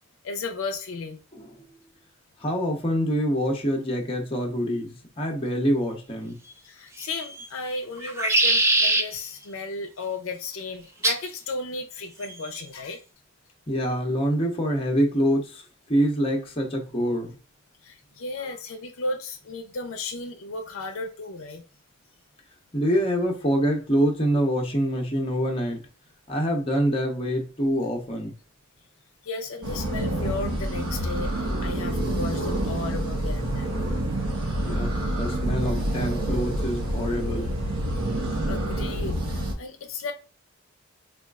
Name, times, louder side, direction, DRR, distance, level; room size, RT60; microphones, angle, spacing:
voice 1, 0.2-1.2 6.6-13.0 17.8-21.6 29.2-31.3 31.6-33.7 38.2-40.1, left 3 dB, 70° left, 0.5 m, -34 dB
voice 2, 2.4-6.4 13.7-15.6 15.9-17.3 22.7-25.8 26.3-28.3 34.6-34.9 35.2-37.5, equal, 25° left, 0.7 m, -25 dB
sound 1, 7.0-7.5 8.0-9.0 11.0-11.3 12.2-12.6, right 2 dB, 10° right, 0.3 m, -22 dB
sound 2, 29.6-39.5, right 1 dB, 90° right, 0.8 m, -27 dB
4.2 x 2.3 x 2.3 m
head